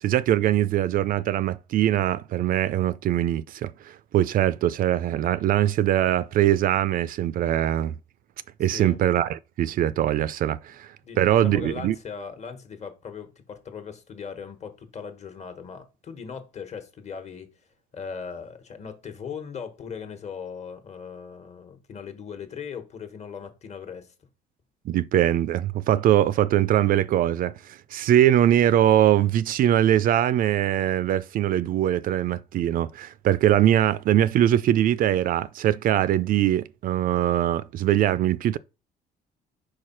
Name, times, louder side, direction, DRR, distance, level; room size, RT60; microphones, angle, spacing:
voice 1, 0.0-8.0 8.6-11.9 24.9-38.6, right 12 dB, 55° right, 0.4 m, -22 dB
voice 2, 8.6-9.0 11.0-17.5 17.9-24.1, left 6 dB, 40° left, 1.2 m, -39 dB
4.8 x 4.6 x 4.4 m
cardioid pair, 110°, 17 cm